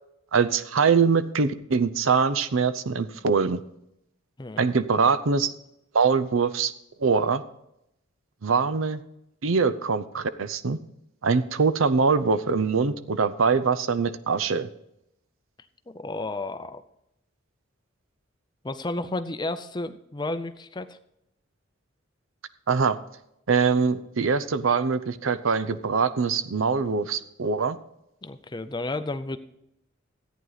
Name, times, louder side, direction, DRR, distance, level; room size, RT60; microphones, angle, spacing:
voice 1, 0.3-3.6 4.6-5.5 5.9-6.7 7.0-7.4 8.4-9.0 9.4-10.8 11.2-14.7 22.7-23.0 23.5-27.8, right 5 dB, 75° right, 14 dB, 0.6 m, -23 dB
voice 2, 15.9-16.8 18.6-21.0 28.2-29.4, left 2 dB, 20° left, 11 dB, 0.5 m, -32 dB
14.0 x 9.2 x 4.0 m, 0.81 s
head